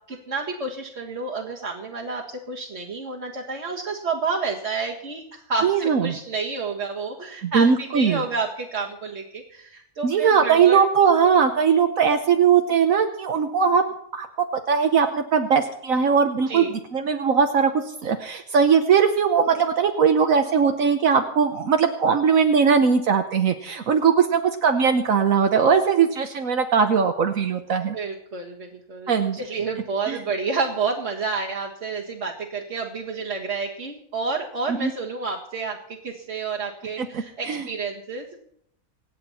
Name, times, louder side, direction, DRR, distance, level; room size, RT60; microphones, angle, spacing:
voice 1, 0.1-10.8 16.5-16.8 27.9-38.4, right 4 dB, 50° right, -5 dB, 2.0 m, -30 dB
voice 2, 5.6-6.2 7.4-8.2 10.0-13.8 14.1-14.3 14.7-17.7 18.0-28.0 29.1-29.4 30.1-30.2 34.8-34.9 37.0-37.1 37.4-37.6, right 6 dB, 70° right, 6 dB, 1.4 m, -20 dB
26.5 x 8.8 x 4.2 m, 0.71 s
omnidirectional pair, 1.5 m